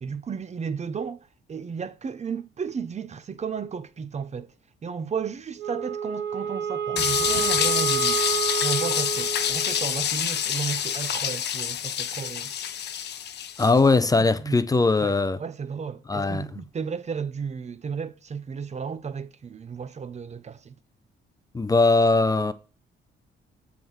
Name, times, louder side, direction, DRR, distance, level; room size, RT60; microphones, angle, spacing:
voice 1, 0.0-4.5 4.8-8.2 8.6-12.5 14.2-14.6 15.0-20.7, right 6 dB, 35° right, 0.6 m, -33 dB
Wind instrument woodwind instrument, 5.6-10.0, right 8 dB, 60° right, 1.2 m, -29 dB
sound 1, 7.0-13.8, left 9 dB, 60° left, 0.7 m, -27 dB
voice 2, 13.6-15.4 16.1-16.4 21.5-22.5, left 3 dB, 20° left, 0.6 m, -20 dB
7.5 x 3.6 x 6.3 m
cardioid pair, 90°, 20 cm